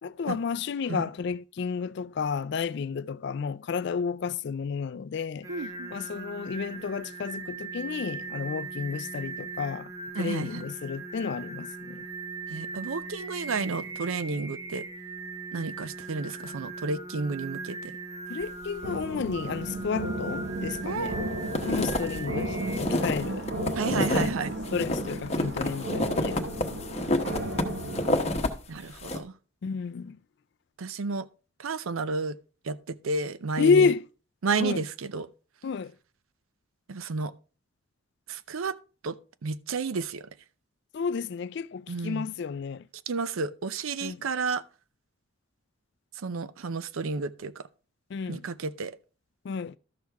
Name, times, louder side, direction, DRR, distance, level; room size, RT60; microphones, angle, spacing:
voice 1, 0.0-5.5 5.9-9.9 10.2-12.0 18.3-21.2 21.7-23.5 23.9-24.4 24.7-26.8 29.6-30.2 33.6-34.0 34.6-34.8 35.6-35.9 40.9-42.9 44.0-44.2 48.1-48.4 49.4-49.8, left 5 dB, 55° left, 0.3 m, -31 dB
Singing, 5.4-22.8, right 3 dB, 15° right, 0.6 m, -39 dB
voice 2, 5.5-5.9 10.1-10.7 12.5-14.8 15.5-17.9 20.8-21.2 23.8-24.5 28.7-29.3 30.8-31.3 31.6-32.4 32.6-33.9 34.4-35.3 36.9-37.3 38.3-38.7 39.0-39.2 39.4-40.3 41.9-42.3 43.1-44.6 46.2-47.6 48.3-49.0, right 4 dB, 75° right, 0.5 m, -31 dB
sound 1, 18.8-28.5, right 1 dB, 60° right, 1.6 m, -34 dB
sound 2, 20.5-21.2 21.4-24.3 24.6-28.5 28.8-29.2, left 1 dB, 30° left, 1.0 m, -29 dB
12.5 x 6.4 x 3.5 m
head